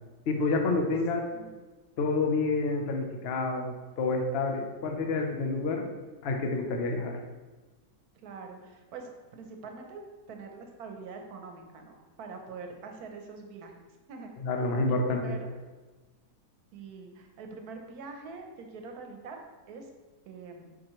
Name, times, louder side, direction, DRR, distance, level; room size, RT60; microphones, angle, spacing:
voice 1, 0.3-1.3 2.0-5.9 6.2-7.2 14.4-15.3, left 3 dB, 65° left, 3 dB, 0.6 m, -28 dB
voice 2, 8.2-10.0 10.3-13.7 14.1-14.3 14.9-15.5 16.7-19.4 19.7-19.9 20.3-20.7, right 4 dB, 60° right, 4 dB, 1.2 m, -44 dB
7.3 x 4.5 x 3.1 m, 1.3 s
omnidirectional pair, 2.0 m